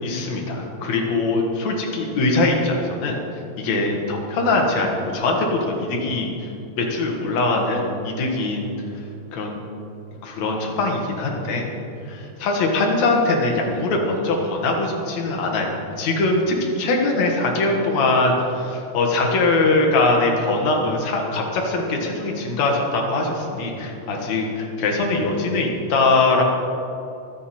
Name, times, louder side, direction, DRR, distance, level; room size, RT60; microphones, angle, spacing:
voice 1, 0.0-3.2 3.6-6.5 6.8-8.7 9.3-9.6 10.2-11.7 12.0-26.4, left 2 dB, 65° left, 0 dB, 2.9 m, -22 dB
23.0 x 8.0 x 4.3 m, 2.8 s
omnidirectional pair, 3.4 m